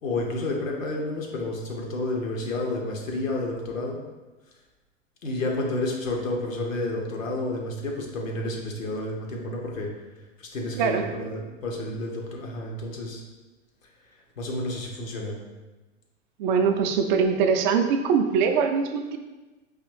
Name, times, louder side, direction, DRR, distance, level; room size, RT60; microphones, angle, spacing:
voice 1, 0.0-4.0 5.2-9.9 10.4-13.2 14.4-15.4, left 2 dB, 80° left, 0 dB, 1.0 m, -30 dB
voice 2, 10.8-11.1 16.4-19.2, right 6 dB, 40° right, 6 dB, 0.4 m, -22 dB
4.0 x 3.0 x 3.2 m, 1.2 s
hypercardioid pair, 110°, 39 cm